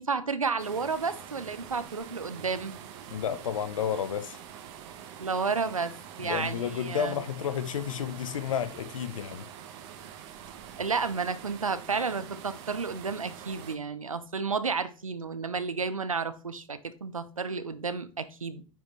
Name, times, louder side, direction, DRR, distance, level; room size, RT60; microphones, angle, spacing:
voice 1, 0.0-2.8 5.2-5.9 6.2-7.2 10.8-18.6, right 5 dB, 90° right, 0.7 m, -31 dB
sound 1, 0.6-13.8, right 9 dB, 55° right, 1.2 m, -45 dB
voice 2, 3.1-4.4 6.2-9.5, left 8 dB, 75° left, 0.7 m, -31 dB
8.9 x 5.1 x 3.1 m
figure-of-eight pair, 85°, 17 cm